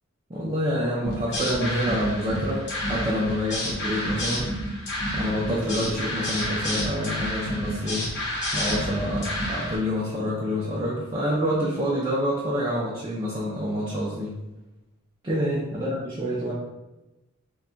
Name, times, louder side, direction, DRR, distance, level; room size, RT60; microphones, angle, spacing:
voice 1, 0.3-4.5 5.1-8.1 8.5-14.4 15.2-16.5, equal, 20° right, -6 dB, 0.5 m, -27 dB
sound 1, 1.0-9.8, equal, 55° left, 0.8 m, -29 dB
2.2 x 2.2 x 3.7 m, 1.0 s
head